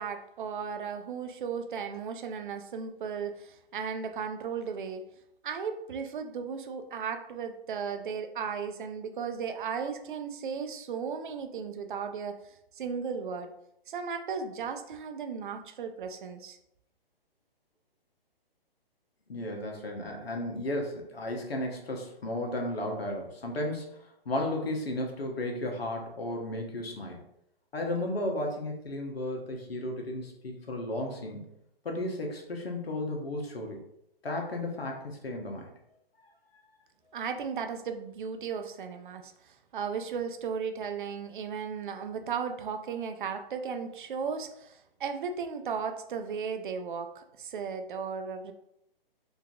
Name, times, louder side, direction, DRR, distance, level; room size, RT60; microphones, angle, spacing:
voice 1, 0.0-5.0 5.4-12.4 12.8-13.5 13.9-16.6 37.1-48.5, right 6 dB, 55° right, 7 dB, 0.5 m, -35 dB
voice 2, 19.3-23.8 24.2-27.2 27.7-31.5 31.8-33.8 34.2-35.7, left 1 dB, 80° left, 1 dB, 0.9 m, -34 dB
3.8 x 2.6 x 2.3 m, 0.79 s
figure-of-eight pair, 135°, 30 cm